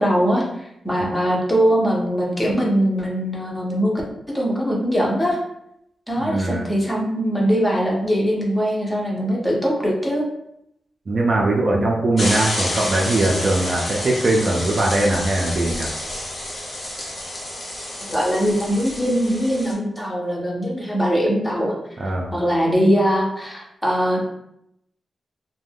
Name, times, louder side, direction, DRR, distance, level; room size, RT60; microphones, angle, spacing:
voice 1, 0.0-4.0 4.3-5.4 6.1-10.2 11.7-11.9 18.1-21.7 22.3-24.2, equal, 10° left, -2 dB, 0.6 m, -21 dB
voice 2, 6.2-6.7 11.1-15.9 22.0-22.3, right 2 dB, 40° right, -1 dB, 0.4 m, -21 dB
sound 1, 12.2-19.7, left 1 dB, 40° left, 0.8 m, -29 dB
2.4 x 2.2 x 3.3 m, 0.79 s
wide cardioid pair, 150°, 0 cm